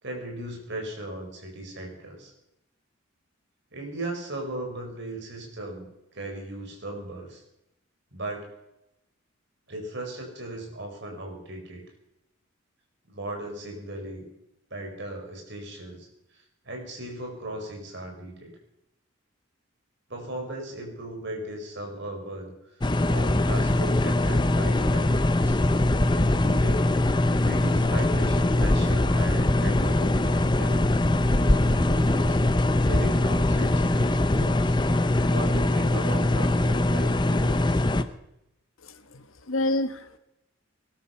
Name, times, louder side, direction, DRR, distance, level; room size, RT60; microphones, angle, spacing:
voice 1, 0.0-2.3 3.7-7.4 8.1-8.5 9.7-11.8 13.1-14.2 14.7-18.5 20.1-25.6 26.2-26.9 27.4-31.0 31.5-32.4 32.8-34.8 35.3-37.8, right 1 dB, 55° right, 2 dB, 4.8 m, -37 dB
sound 1, 22.8-38.0, left 1 dB, 20° left, 0.7 m, -22 dB
voice 2, 38.8-40.2, left 1 dB, 70° left, 9 dB, 1.4 m, -29 dB
19.5 x 12.5 x 5.8 m, 0.88 s
head